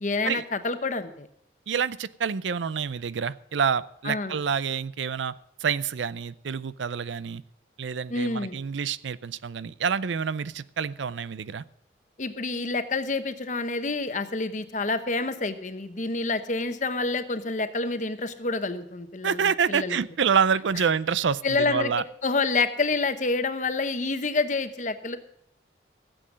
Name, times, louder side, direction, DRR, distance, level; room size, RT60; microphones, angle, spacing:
voice 1, 0.0-1.3 4.0-4.4 8.1-8.6 12.2-19.4 19.7-20.0 21.4-21.9 22.2-25.2, left 3 dB, 40° left, 10 dB, 0.9 m, -28 dB
voice 2, 1.7-5.4 5.6-7.4 7.8-11.6 19.2-22.0, right 6 dB, 85° right, 18 dB, 0.5 m, -27 dB
15.5 x 7.8 x 7.4 m, 0.74 s
head